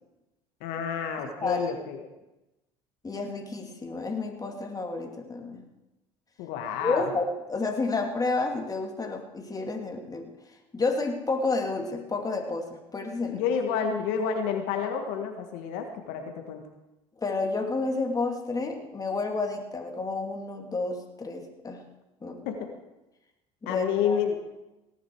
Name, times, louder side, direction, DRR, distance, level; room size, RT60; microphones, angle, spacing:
voice 1, 0.6-2.1 6.4-7.1 13.3-16.6 22.4-22.7 23.6-24.4, left 7 dB, 75° left, 4 dB, 1.6 m, -29 dB
voice 2, 1.2-1.7 3.0-5.6 6.8-10.3 10.7-13.4 17.2-21.8 22.2-22.4 23.6-24.2, left 3 dB, 25° left, 2 dB, 2.5 m, -30 dB
17.5 x 10.5 x 4.7 m, 0.98 s
hypercardioid pair, 75°, 16 cm